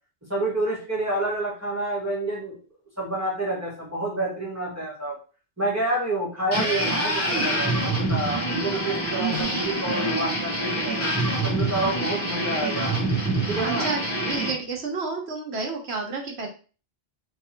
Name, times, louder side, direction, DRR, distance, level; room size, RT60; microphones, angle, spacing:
voice 1, 0.3-2.6 3.0-5.1 5.6-11.0 11.4-13.0 13.5-13.9, right 1 dB, 15° right, -5 dB, 1.8 m, -28 dB
sound 1, 6.5-14.5, right 1 dB, 15° left, 1.4 m, -26 dB
sound 2, 9.3-9.9, left 9 dB, 70° left, 1.0 m, -37 dB
voice 2, 13.6-14.0 14.3-16.5, right 3 dB, 75° right, 1 dB, 1.4 m, -30 dB
3.4 x 3.1 x 4.4 m, 0.37 s
omnidirectional pair, 1.1 m